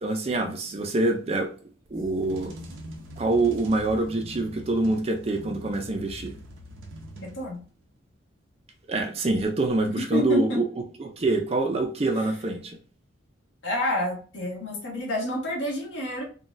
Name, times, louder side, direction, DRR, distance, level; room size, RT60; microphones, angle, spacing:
voice 1, 0.0-1.5 1.9-2.5 3.2-6.3 8.9-10.7 11.0-12.8, right 2 dB, 30° right, 4 dB, 0.4 m, -25 dB
sound 1, 1.9-7.8, equal, 90° right, 0.8 m, -43 dB
voice 2, 7.2-7.6 9.8-10.6 13.6-16.2, left 1 dB, 75° left, -2 dB, 1.4 m, -29 dB
3.8 x 2.3 x 2.5 m, 0.38 s
head